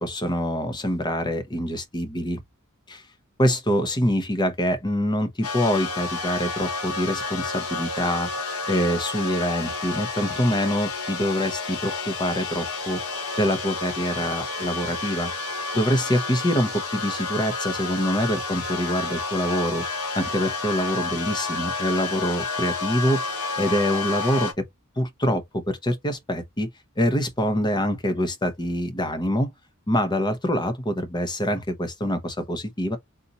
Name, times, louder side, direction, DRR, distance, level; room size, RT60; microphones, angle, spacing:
voice 1, 0.0-2.4 2.9-3.0 3.4-8.4 8.7-13.0 13.4-15.3 15.7-19.8 20.1-23.2 23.6-24.7 25.0-26.7 27.0-29.5 29.9-33.0, equal, 20° left, 0.8 m, -25 dB
sound 1, 5.4-24.5, left 4 dB, 85° left, 1.3 m, -30 dB
4.1 x 2.5 x 4.0 m
head